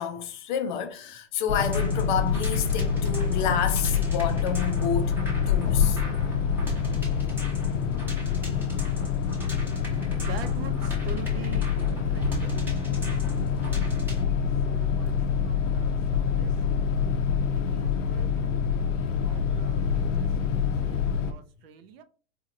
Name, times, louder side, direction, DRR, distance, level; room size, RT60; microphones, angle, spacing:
voice 1, 0.0-5.2 5.5-6.0, left 8 dB, 40° left, 0.5 m, -29 dB
sound 1, 1.5-21.3, left 7 dB, 75° left, 0.7 m, -26 dB
sound 2, 1.5-14.2, right 2 dB, 5° right, 0.9 m, -40 dB
voice 2, 10.1-12.6 13.2-15.1 15.4-16.6 17.5-22.0, right 8 dB, 50° right, 0.7 m, -45 dB
4.2 x 2.8 x 2.5 m
hypercardioid pair, 140°, 38 cm